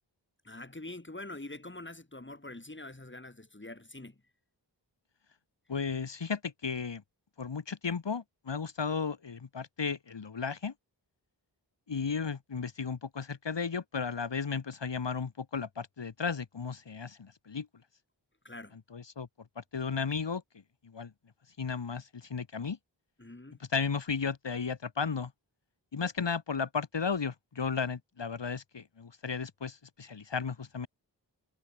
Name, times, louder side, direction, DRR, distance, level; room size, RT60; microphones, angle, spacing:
voice 1, 0.4-4.2 18.4-18.8 23.2-23.7, left 2 dB, 25° left, 3.7 m, -45 dB
voice 2, 5.7-7.0 7.4-10.7 11.9-17.7 18.9-19.3 19.6-20.4 20.9-21.1 21.6-22.8 23.7-25.3 25.9-30.9, left 5 dB, 75° left, 1.6 m, -34 dB
wide cardioid pair, 50°, 44 cm